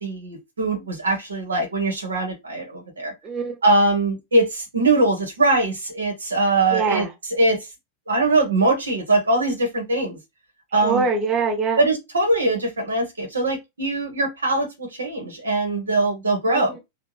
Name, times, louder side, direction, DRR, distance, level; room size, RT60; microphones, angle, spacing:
voice 1, 0.0-3.1 3.6-7.0 7.4-7.6 8.1-10.2 10.7-11.0 11.8-16.8, right 2 dB, 70° right, 1.1 m, -22 dB
voice 2, 3.2-3.6 6.7-7.1 10.8-11.8 16.5-16.8, right 4 dB, 25° right, 1.3 m, -24 dB
3.4 x 2.3 x 3.1 m
figure-of-eight pair, 90°, 0 cm